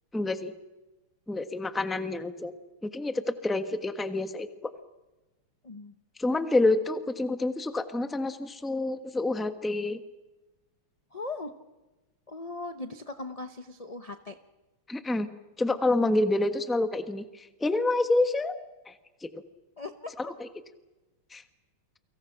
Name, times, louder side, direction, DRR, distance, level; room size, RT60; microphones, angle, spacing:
voice 1, 0.1-0.5 1.3-2.5 2.8-4.5 6.2-10.0 14.9-15.3 15.6-18.6 18.9-19.0 19.2-19.4 20.2-20.5 21.3-21.4, left 2 dB, ahead, 8 dB, 0.8 m, -28 dB
voice 2, 11.1-11.5 12.3-14.4 19.8-20.1, left 2 dB, 35° left, 7 dB, 0.6 m, -39 dB
29.5 x 24.5 x 5.9 m, 1.1 s
omnidirectional pair, 2.3 m